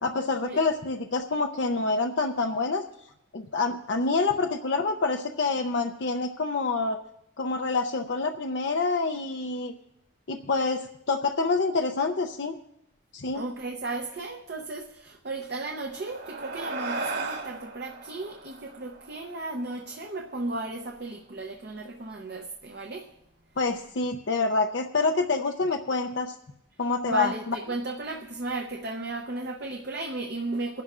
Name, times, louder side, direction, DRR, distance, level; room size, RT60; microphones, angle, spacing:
voice 1, 0.0-2.8 3.3-7.0 7.4-9.7 10.3-12.5 13.1-13.4 23.6-26.3 26.8-27.5, left 3 dB, 65° left, 3 dB, 0.6 m, -27 dB
voice 2, 13.3-23.1 27.1-30.8, right 2 dB, 55° right, 3 dB, 0.8 m, -35 dB
sound 1, 15.7-20.4, right 3 dB, 75° right, 3.0 m, -37 dB
24.0 x 11.5 x 2.5 m, 0.84 s
head